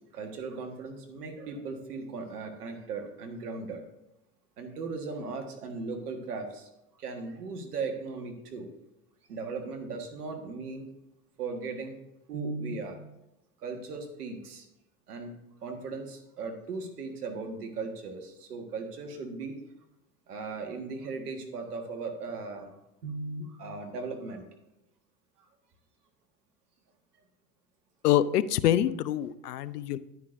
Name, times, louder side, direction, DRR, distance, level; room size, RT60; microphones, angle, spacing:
voice 1, 0.1-3.8 4.6-6.7 7.0-8.7 9.3-10.9 11.4-12.0 12.3-13.0 13.6-14.7 15.1-15.3 15.6-19.6 20.3-22.7 23.0-24.4, right 4 dB, 80° right, 4 dB, 1.6 m, -37 dB
voice 2, 28.0-30.0, left 11 dB, 85° left, 17 dB, 0.6 m, -25 dB
10.5 x 9.6 x 2.6 m, 0.90 s
hypercardioid pair, 75°, 46 cm